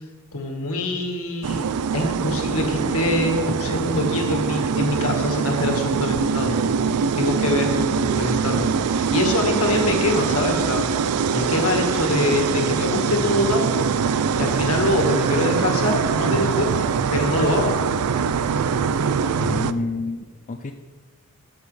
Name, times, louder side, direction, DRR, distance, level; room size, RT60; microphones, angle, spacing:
voice 1, 0.3-6.5 7.1-13.9 14.4-17.7, left 2 dB, 75° left, 2 dB, 1.6 m, -24 dB
sound 1, 1.4-19.7, right 6 dB, 85° right, 0.4 m, -23 dB
voice 2, 19.4-20.7, left 3 dB, 35° left, 5 dB, 0.4 m, -28 dB
13.0 x 7.3 x 3.3 m, 1.4 s
head